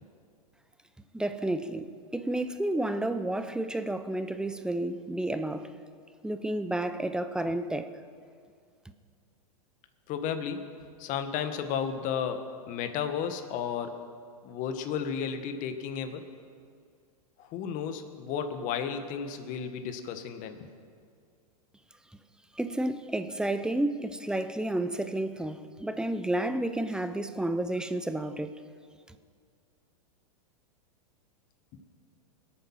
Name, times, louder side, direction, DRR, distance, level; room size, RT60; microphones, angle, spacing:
voice 1, 1.1-5.7 6.2-7.9 22.5-28.6 29.1-29.2, right 1 dB, 5° right, 0.7 m, -31 dB
voice 2, 10.1-10.7 11.0-14.1 14.4-16.3 17.4-20.7 31.7-31.9, left 7 dB, 40° left, 1.6 m, -33 dB
24.5 x 8.9 x 5.7 m
hypercardioid pair, 110°, 20 cm